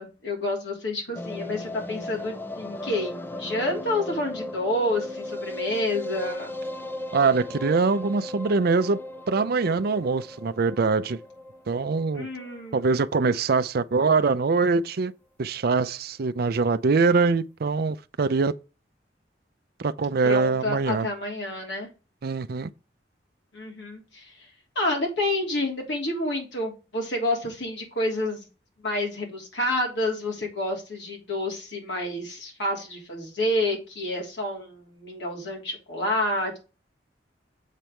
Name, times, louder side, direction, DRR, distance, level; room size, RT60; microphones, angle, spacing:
voice 1, 0.0-6.5 12.1-12.9 20.2-21.9 23.5-24.5 24.7-28.4 28.8-36.6, left 1 dB, 75° left, 3.3 m, -29 dB
sound 1, 1.1-13.3 13.6-13.7 13.9-14.0 14.3-14.4, left 1 dB, 10° left, 0.6 m, -37 dB
voice 2, 7.1-9.0 9.3-11.2 11.7-12.3 12.7-15.1 15.4-18.5 19.8-21.1 22.2-22.7, right 4 dB, 60° right, 0.5 m, -23 dB
7.4 x 4.4 x 5.2 m
head